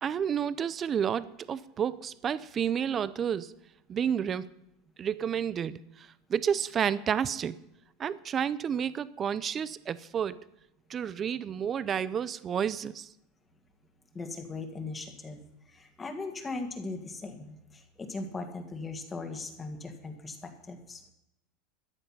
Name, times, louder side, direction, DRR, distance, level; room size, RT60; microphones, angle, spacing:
voice 1, 0.0-3.5 3.9-4.5 5.0-7.6 8.0-10.4 10.9-13.1, right 8 dB, 30° right, 17 dB, 0.6 m, -30 dB
voice 2, 14.1-21.0, left 3 dB, 20° left, 5 dB, 2.0 m, -39 dB
13.5 x 9.8 x 5.6 m, 0.85 s
supercardioid pair, 130°, 0 cm